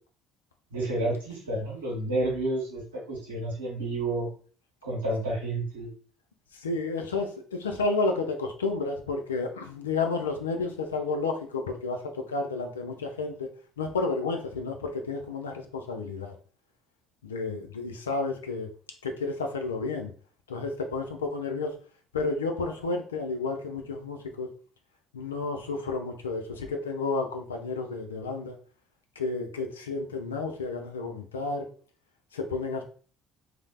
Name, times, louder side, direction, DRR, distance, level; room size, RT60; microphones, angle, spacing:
voice 1, 0.7-4.3 4.8-5.9, right 2 dB, 90° right, -5 dB, 0.8 m, -30 dB
voice 2, 6.5-13.5 13.8-16.3 17.2-18.7 19.0-20.1 20.5-21.8 22.1-24.5 25.1-28.6 29.2-31.7 32.3-32.8, left 3 dB, 85° left, 4 dB, 0.3 m, -31 dB
3.1 x 2.0 x 2.3 m, 0.41 s
figure-of-eight pair, 55°, 0 cm